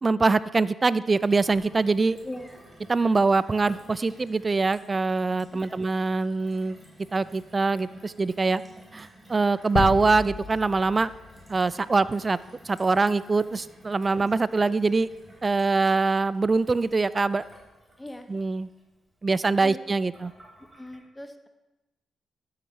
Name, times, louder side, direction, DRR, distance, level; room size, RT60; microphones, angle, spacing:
voice 1, 0.0-2.2 2.9-6.8 7.1-8.6 8.9-11.1 11.5-12.4 12.6-15.1 15.4-17.4 18.3-18.7 19.2-20.3, right 3 dB, 35° right, 17 dB, 0.3 m, -23 dB
Gurgling / Water tap faucet / Sink (filling or washing), 1.1-21.0, equal, 15° right, 3.9 m, -53 dB
voice 2, 2.2-2.6 5.6-5.8 14.1-14.3 18.0-18.3 19.6-19.8 20.8-21.5, left 1 dB, 15° left, 8 dB, 1.1 m, -39 dB
sound 1, 9.8-12.2, left 7 dB, 65° left, 0.6 m, -33 dB
12.0 x 8.0 x 3.3 m, 1.0 s
supercardioid pair, 50°, 0 cm